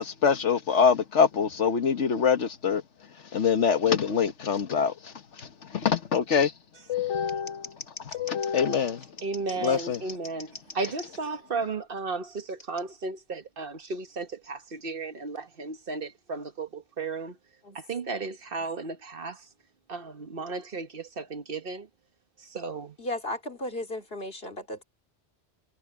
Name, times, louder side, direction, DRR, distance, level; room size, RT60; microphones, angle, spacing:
voice 1, 0.0-2.8 3.3-6.5 6.9-9.1 9.6-10.0, left 6 dB, 90° left, 1.6 m, -25 dB
Scissors, 5.4-5.5 6.4-6.5 7.1-11.1 12.6-12.8, left 3 dB, 35° left, 2.1 m, -44 dB
voice 2, 9.2-17.4 17.7-19.4 19.9-21.9 22.5-22.9, right 4 dB, 55° right, 1.4 m, -34 dB
voice 3, 23.0-24.8, left 1 dB, 55° left, 2.8 m, -35 dB
omnidirectional pair, 1.2 m